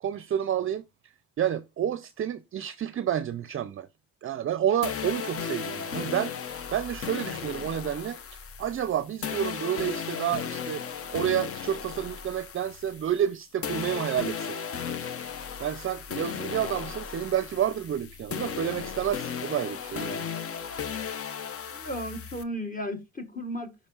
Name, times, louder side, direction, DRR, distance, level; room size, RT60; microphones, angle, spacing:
voice 1, 0.0-0.8 1.4-3.9 4.2-6.3 6.7-10.8 11.1-14.6 15.6-20.3, right 10 dB, 45° right, 0.5 m, -29 dB
sound 1, 4.8-13.3 13.6-22.4, left 7 dB, 50° left, 0.8 m, -35 dB
voice 2, 21.7-23.9, equal, 25° left, 1.6 m, -35 dB
14.5 x 5.2 x 2.4 m
cardioid pair, 90°, 30 cm